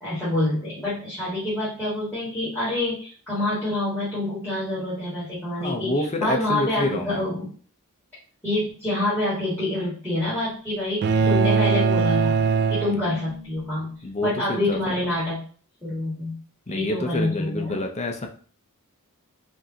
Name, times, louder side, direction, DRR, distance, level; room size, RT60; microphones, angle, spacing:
voice 1, 0.0-7.5 8.4-12.4 12.7-13.9 14.2-15.4 15.8-16.4 16.7-17.8, left 1 dB, 10° left, -12 dB, 1.9 m, -27 dB
voice 2, 5.6-7.2 12.8-13.1 14.0-15.0 16.7-18.3, left 1 dB, 30° left, 3 dB, 0.6 m, -28 dB
sound 1, 11.0-13.6, right 5 dB, 50° right, 0.3 m, -21 dB
5.2 x 2.6 x 2.8 m, 0.41 s
head